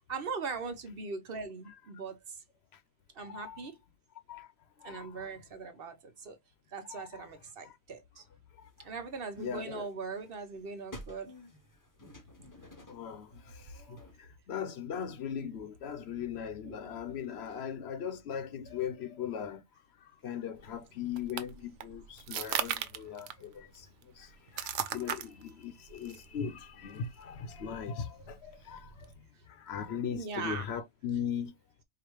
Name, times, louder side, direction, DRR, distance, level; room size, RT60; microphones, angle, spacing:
voice 1, 0.1-2.4 3.1-3.8 4.8-6.4 6.7-8.2 8.8-11.3 16.6-17.1 30.1-30.7, right 4 dB, 55° right, 0.9 m, -40 dB
voice 2, 3.2-3.6 4.3-4.5 4.8-5.1 6.9-7.0 7.6-7.7 9.4-9.9 12.9-13.6 13.9-19.6 20.2-23.9 24.2-29.1 29.5-31.5, left 8 dB, 65° left, 0.9 m, -39 dB
sound 1, 8.6-14.2, left 1 dB, 20° left, 0.7 m, -53 dB
sound 2, 20.6-29.1, right 10 dB, 90° right, 0.9 m, -40 dB
4.8 x 2.4 x 2.9 m
omnidirectional pair, 1.2 m